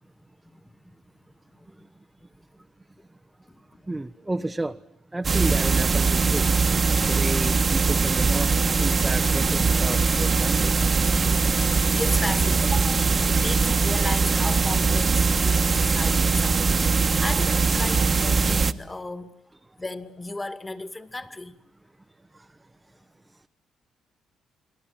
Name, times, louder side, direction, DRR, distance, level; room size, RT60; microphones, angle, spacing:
voice 1, 0.4-1.0 1.5-1.7 3.5-3.8 11.9-16.7 16.9-19.4 19.8-21.6, left 2 dB, 20° left, 2.3 m, -35 dB
voice 2, 3.9-4.8 5.1-6.5 7.1-8.5 8.8-10.7, right 2 dB, 15° right, 1.0 m, -31 dB
sound 1, 5.2-18.7, right 4 dB, 35° right, 1.4 m, -21 dB
30.0 x 22.0 x 8.8 m
cardioid pair, 90°, 0 cm